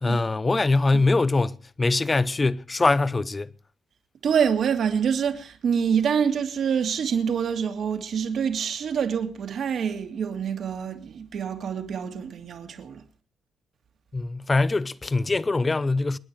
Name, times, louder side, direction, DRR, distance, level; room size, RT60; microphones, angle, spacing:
voice 1, 0.0-3.5 14.1-16.2, left 3 dB, 25° left, 0.8 m, -23 dB
voice 2, 4.2-13.0, right 7 dB, 60° right, 2.6 m, -26 dB
29.0 x 9.8 x 3.2 m
cardioid pair, 90°, 0 cm